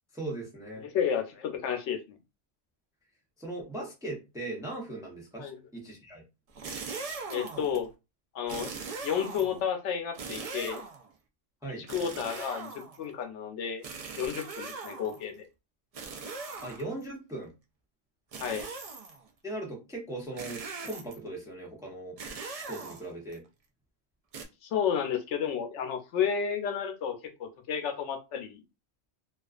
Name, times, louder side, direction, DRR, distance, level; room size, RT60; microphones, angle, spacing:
voice 1, 0.1-0.9 3.4-6.2 11.6-11.8 16.6-17.5 19.4-22.2 22.5-23.4, right 2 dB, 5° right, -1 dB, 0.5 m, -39 dB
voice 2, 0.8-2.2 5.4-5.6 7.3-7.9 8.3-10.8 11.8-13.8 14.2-15.5 18.4-18.7 24.6-28.6, left 7 dB, 85° left, 6 dB, 0.9 m, -32 dB
sound 1, 6.5-7.8 8.5-9.7 10.1-11.1 11.9-13.1 13.8-15.3 15.9-17.1 18.3-19.2 20.4-21.3 22.2-23.3 24.3-24.5, right 4 dB, 75° right, 0.3 m, -40 dB
2.3 x 2.3 x 2.3 m, 0.26 s
omnidirectional pair, 1.2 m